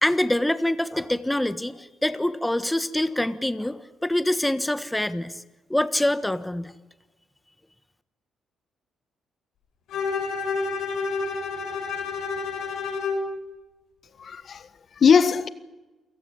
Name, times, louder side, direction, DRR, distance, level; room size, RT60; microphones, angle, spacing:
voice 1, 0.0-5.4 5.7-6.7, left 1 dB, 5° left, 1.4 m, -25 dB
Bowed string instrument, 9.9-13.3, left 4 dB, 80° left, 7.8 m, -29 dB
voice 2, 14.2-15.5, left 6 dB, 50° left, 1.4 m, -20 dB
28.5 x 17.5 x 10.0 m
cardioid pair, 90°, 0 cm